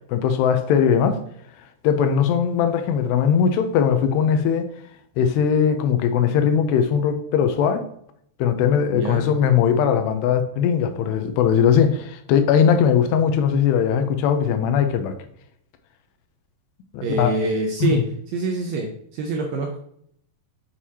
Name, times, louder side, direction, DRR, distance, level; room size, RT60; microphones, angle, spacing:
voice 1, 0.1-1.2 1.8-4.7 5.2-7.8 8.4-15.1 16.9-17.3 17.8-18.0, left 7 dB, 80° left, 8 dB, 2.7 m, -19 dB
voice 2, 8.9-9.3 17.0-18.0 18.3-19.8, right 3 dB, 80° right, 2 dB, 2.1 m, -25 dB
7.3 x 6.4 x 2.8 m, 0.67 s
omnidirectional pair, 4.9 m